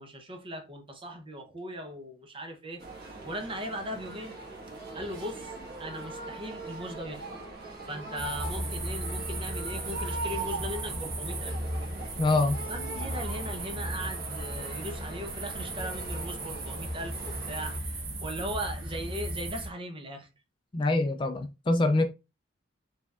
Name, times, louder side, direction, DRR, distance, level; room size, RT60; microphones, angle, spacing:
voice 1, 0.0-4.3 4.9-7.4 7.8-11.6 12.7-20.3, equal, 25° right, 0.8 m, -39 dB
sound 1, 2.8-17.8, right 3 dB, 50° right, 1.4 m, -41 dB
sound 2, 8.2-19.7, right 1 dB, 70° right, 1.4 m, -36 dB
voice 2, 12.2-12.6 20.7-22.0, left 2 dB, 25° left, 0.4 m, -25 dB
4.8 x 3.4 x 2.4 m
head